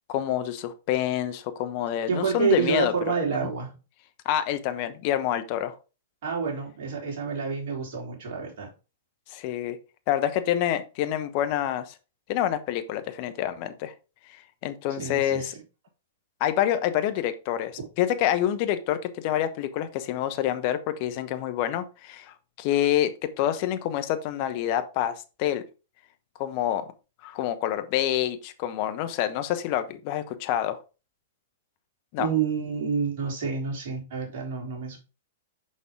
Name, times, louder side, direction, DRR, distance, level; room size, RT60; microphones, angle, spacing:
voice 1, 0.1-2.9 4.2-5.8 9.3-9.8 10.1-11.9 12.3-13.9 14.6-15.5 16.4-25.6 26.4-26.9 27.2-30.8 32.1-32.3, left 11 dB, 45° left, 10 dB, 0.9 m, -27 dB
voice 2, 2.1-3.7 6.2-8.7 15.0-15.5 32.2-35.0, right 6 dB, 55° right, -2 dB, 3.5 m, -28 dB
6.5 x 5.4 x 3.6 m, 0.31 s
hypercardioid pair, 110°, 0 cm